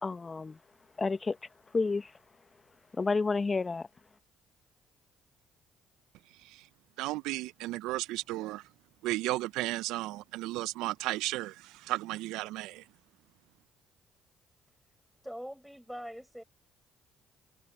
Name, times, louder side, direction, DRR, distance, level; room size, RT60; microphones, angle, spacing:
voice 1, 0.0-0.6 1.0-1.4 1.7-2.1 3.0-3.9, left 4 dB, 30° left, 1.3 m, -30 dB
voice 2, 7.0-8.6 9.0-12.8, right 18 dB, 75° right, 0.7 m, -34 dB
voice 3, 15.2-16.4, equal, ahead, 6.5 m, -42 dB
hypercardioid pair, 55°, 0 cm